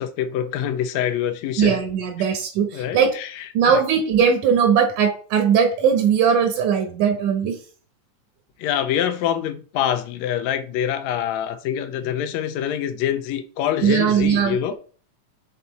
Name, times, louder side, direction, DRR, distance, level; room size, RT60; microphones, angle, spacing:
voice 1, 0.0-1.8 2.2-2.3 2.7-3.8 8.6-14.7, left 10 dB, 75° left, 1.7 m, -25 dB
voice 2, 1.6-3.1 3.5-7.6 13.8-14.7, right 7 dB, 75° right, 2.4 m, -19 dB
6.8 x 4.1 x 4.1 m
omnidirectional pair, 3.6 m